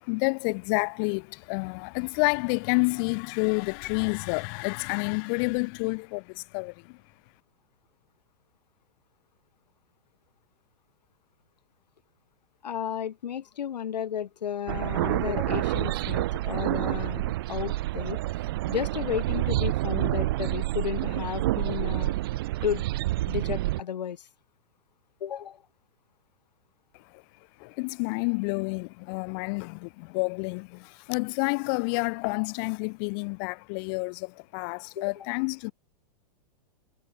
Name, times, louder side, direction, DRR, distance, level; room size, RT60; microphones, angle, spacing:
voice 1, 0.0-7.0 27.1-27.2 27.6-35.7, left 36 dB, 30° left, 2.5 m, -29 dB
voice 2, 12.6-18.2 18.7-22.1 22.6-22.9 23.3-24.3 25.2-25.6 34.9-35.3, left 9 dB, 90° left, 6.5 m, -33 dB
sound 1, 14.7-23.8, right 17 dB, 35° right, 0.6 m, -28 dB
supercardioid pair, 170°, 21 cm